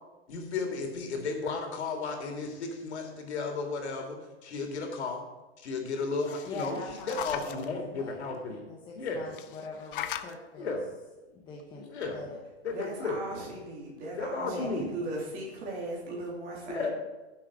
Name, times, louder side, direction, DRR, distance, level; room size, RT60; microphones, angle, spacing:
voice 1, 0.3-4.2 4.4-5.2 5.6-8.6 9.0-9.3 10.6-10.9 11.9-12.2 12.6-13.2 14.1-14.9 16.7-16.9, left 4 dB, 80° left, 3 dB, 3.3 m, -34 dB
sound 1, 6.0-7.7 9.3-10.3 11.6-11.7 12.0-12.1, left 11 dB, 50° left, 0.7 m, -39 dB
voice 2, 6.5-7.7 8.0-10.8 11.2-12.4 14.4-14.8, left 3 dB, 15° left, -2 dB, 1.0 m, -43 dB
voice 3, 12.7-16.9, right 2 dB, 25° right, -3 dB, 3.2 m, -38 dB
16.0 x 7.6 x 5.1 m, 1.1 s
supercardioid pair, 165°, 33 cm